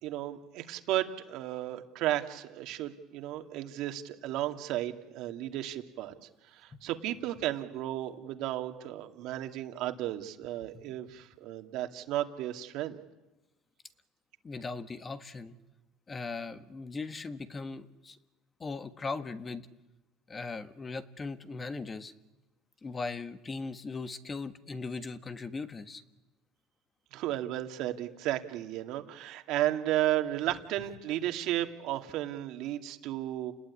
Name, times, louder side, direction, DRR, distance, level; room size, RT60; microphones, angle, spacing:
voice 1, 0.0-6.1 6.5-13.0 27.1-33.5, right 13 dB, 65° right, 6 dB, 2.4 m, -34 dB
voice 2, 14.4-15.6 16.1-18.2 18.6-19.7 20.3-22.1 22.8-26.0, left 4 dB, 25° left, 10 dB, 1.5 m, -39 dB
29.5 x 20.0 x 9.8 m, 1.1 s
supercardioid pair, 110°, 0 cm